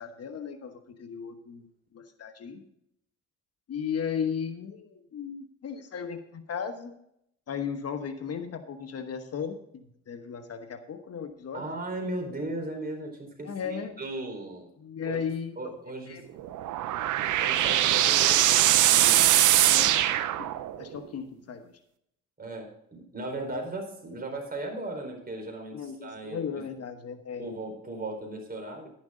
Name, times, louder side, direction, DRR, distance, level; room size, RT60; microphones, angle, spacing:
voice 1, 0.0-1.7 1.9-2.7 3.7-7.0 7.5-11.7 13.4-14.0 14.8-15.8 16.1-16.2 19.6-20.5 20.8-21.7 25.7-27.5, left 7 dB, 55° left, 7 dB, 1.2 m, -36 dB
voice 2, 11.5-14.7 15.0-15.2 15.6-16.2 17.4-19.9 22.4-26.6 27.4-28.9, right 2 dB, 30° right, 2 dB, 4.5 m, -37 dB
sound 1, 16.4-20.9, right 13 dB, 80° right, 0.8 m, -22 dB
11.5 x 10.5 x 3.8 m, 0.73 s
cardioid pair, 90°, 30 cm